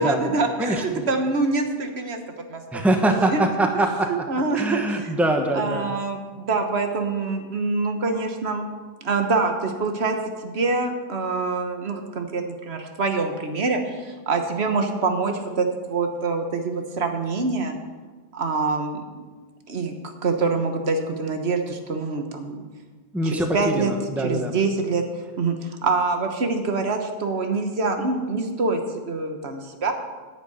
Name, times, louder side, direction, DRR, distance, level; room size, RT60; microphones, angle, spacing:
voice 1, 0.0-2.2 2.5-2.8 3.3-3.4 4.1-5.2 5.5-8.7 9.0-10.2 10.4-17.7 18.3-19.1 19.7-22.6 23.2-23.9 24.2-25.0 25.4-28.8 29.1-29.9, right 3 dB, 70° right, 5 dB, 1.4 m, -25 dB
voice 2, 0.6-1.1 2.7-4.1 4.5-5.9 23.1-24.5, right 1 dB, ahead, 4 dB, 1.0 m, -23 dB
10.0 x 6.4 x 8.9 m, 1.4 s
omnidirectional pair, 1.1 m